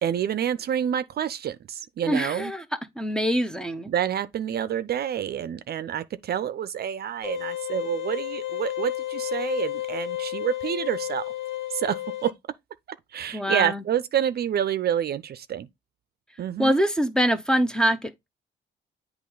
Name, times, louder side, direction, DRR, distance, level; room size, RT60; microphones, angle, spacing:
voice 1, 0.0-2.5 3.9-11.2 11.7-12.3 13.1-15.7 16.4-16.8, right 9 dB, 55° right, 0.5 m, -28 dB
voice 2, 2.1-2.6 3.0-3.9 13.3-13.8 16.6-18.3, equal, 5° left, 0.7 m, -24 dB
sound 1, 7.2-12.3, left 14 dB, 75° left, 0.8 m, -32 dB
8.3 x 3.0 x 3.9 m
cardioid pair, 90°, 20 cm